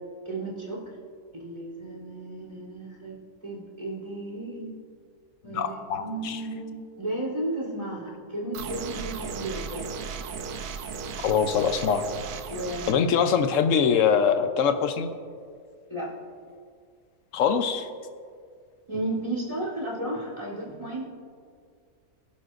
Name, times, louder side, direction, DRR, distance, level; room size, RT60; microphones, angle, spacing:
voice 1, 0.3-0.8 1.3-3.2 3.4-4.7 5.4-9.9 12.4-13.1 15.9-16.1 18.9-21.0, right 1 dB, 20° right, -3 dB, 3.5 m, -33 dB
voice 2, 5.4-6.4 11.2-12.0 12.9-15.1 17.3-17.9, left 7 dB, 60° left, 8 dB, 1.1 m, -23 dB
sound 1, 8.5-12.9, right 5 dB, 75° right, 1.3 m, -36 dB
24.5 x 11.0 x 2.6 m, 2.1 s
omnidirectional pair, 1.6 m